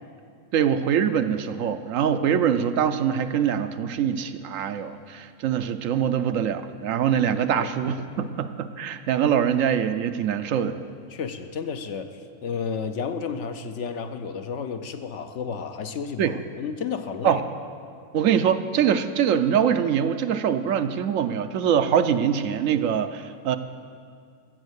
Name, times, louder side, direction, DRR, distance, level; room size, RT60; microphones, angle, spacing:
voice 1, 0.5-10.8 16.2-16.3 17.2-17.4 18.1-23.6, right 8 dB, 75° right, 10 dB, 1.0 m, -23 dB
voice 2, 8.0-8.3 11.1-17.4, left 6 dB, 65° left, 8 dB, 0.9 m, -32 dB
14.0 x 7.3 x 8.0 m, 2.3 s
omnidirectional pair, 1.4 m